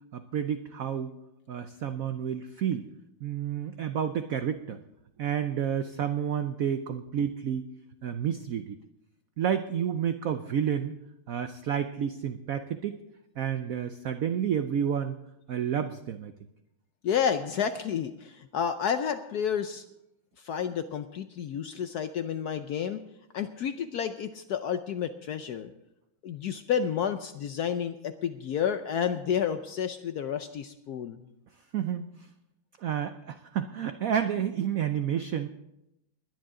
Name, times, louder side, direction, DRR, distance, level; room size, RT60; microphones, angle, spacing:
voice 1, 0.1-1.1 1.5-2.9 3.2-4.8 5.2-7.7 8.0-8.7 9.4-11.0 11.3-13.0 13.4-15.2 15.5-16.3 31.7-32.3 32.8-35.5, right 8 dB, 90° right, 9 dB, 0.7 m, -30 dB
voice 2, 17.0-19.8 20.4-23.0 23.3-25.7 26.2-31.3, left 8 dB, 70° left, 9 dB, 0.9 m, -30 dB
20.5 x 10.5 x 3.7 m, 0.85 s
omnidirectional pair, 2.3 m